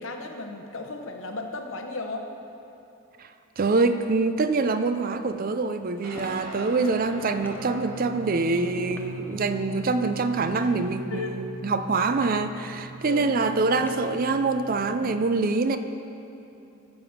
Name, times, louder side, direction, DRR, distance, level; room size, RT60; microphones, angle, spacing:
voice 1, 0.0-2.3 11.1-11.4 13.0-13.3, left 3 dB, 60° left, 4 dB, 0.9 m, -35 dB
voice 2, 3.6-15.8, right 3 dB, 40° right, 10 dB, 0.4 m, -25 dB
Guitar, 6.0-15.0, right 1 dB, 65° right, 2.1 m, -40 dB
sound 1, 6.2-6.5 7.4-7.7 8.9-9.1 10.5-10.7 12.1-12.5 13.8-14.1, left 1 dB, 10° left, 0.6 m, -45 dB
14.5 x 5.1 x 7.0 m, 2.9 s
head